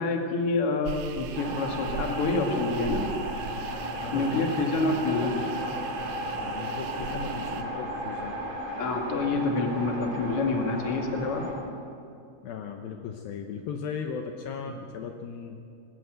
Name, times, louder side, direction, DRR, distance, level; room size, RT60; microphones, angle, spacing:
voice 1, 0.0-3.1 4.1-5.5 8.8-11.5, left 3 dB, 40° left, 2 dB, 2.4 m, -27 dB
sound 1, 0.9-7.6, right 8 dB, 75° right, 1.9 m, -40 dB
sound 2, 1.3-11.5, right 1 dB, 90° right, 6.6 m, -34 dB
voice 2, 4.0-4.5 6.4-8.4 12.4-15.6, left 6 dB, 75° left, 4 dB, 2.6 m, -37 dB
20.0 x 17.0 x 7.9 m, 2.6 s
omnidirectional pair, 4.7 m